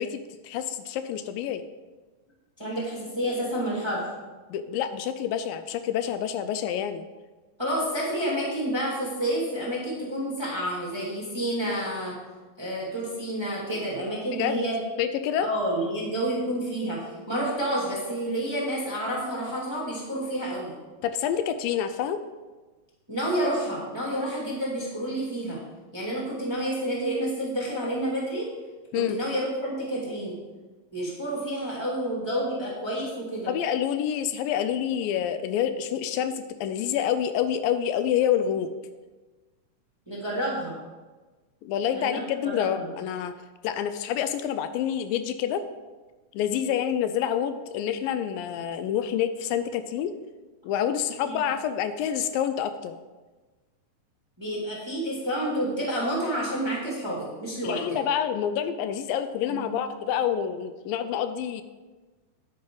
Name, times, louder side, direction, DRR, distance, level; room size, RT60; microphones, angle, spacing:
voice 1, 0.0-1.6 4.5-7.1 14.3-14.6 15.0-15.5 21.0-22.2 28.9-29.2 33.5-38.7 41.6-43.4 43.6-45.6 46.3-50.1 50.6-53.0 57.6-61.6, left 9 dB, 85° left, 10 dB, 2.2 m, -27 dB
voice 2, 2.6-4.1 7.6-12.2 12.6-14.8 15.4-20.8 23.1-25.6 25.9-28.5 28.9-30.4 30.9-33.5 40.1-40.8 41.9-42.9 51.2-51.4 54.4-58.0 59.5-59.6, right 1 dB, 10° right, -5 dB, 1.5 m, -29 dB
9.7 x 9.6 x 3.8 m, 1.3 s
omnidirectional pair, 4.1 m